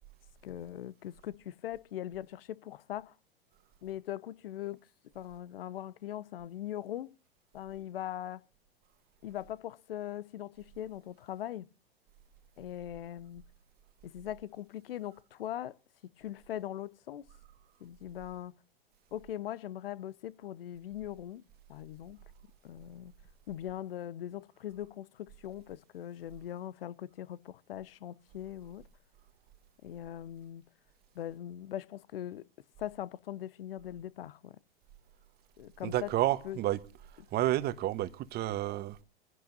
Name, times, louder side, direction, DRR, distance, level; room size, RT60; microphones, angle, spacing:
voice 1, 0.4-3.1 3.8-4.8 5.1-7.1 7.5-8.4 9.2-11.7 12.6-13.4 14.0-15.8 16.2-17.3 17.8-18.6 19.1-21.4 21.7-22.2 22.6-23.1 23.5-28.9 29.8-30.7 31.1-32.5 32.8-34.6 35.6-36.1 36.4-36.6, left 12 dB, 65° left, 0.8 m, -41 dB
voice 2, 35.8-36.8 37.3-39.0, right 14 dB, 30° right, 1.2 m, -30 dB
24.5 x 16.0 x 2.7 m
hypercardioid pair, 100°, 30 cm